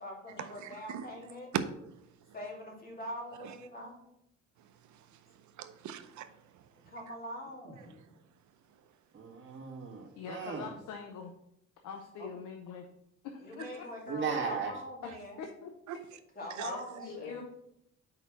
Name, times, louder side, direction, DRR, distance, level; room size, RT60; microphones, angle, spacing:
voice 1, 0.0-1.5 2.3-4.0 6.9-8.0 12.2-12.3 13.4-15.4 16.4-17.4, equal, 30° left, -2 dB, 2.6 m, -43 dB
voice 2, 0.6-1.1 1.5-1.9 3.4-3.5 5.6-6.3 15.9-16.0 16.6-17.1, right 8 dB, 70° right, 10 dB, 0.6 m, -38 dB
voice 3, 9.1-10.7 14.1-14.7, right 5 dB, 40° right, -2 dB, 1.6 m, -36 dB
voice 4, 10.2-11.3 11.8-12.9 13.2-13.9 15.4-15.7 16.6-17.5, left 5 dB, 85° left, 3 dB, 0.8 m, -43 dB
4.8 x 4.8 x 5.8 m, 0.79 s
cardioid pair, 90°, 30 cm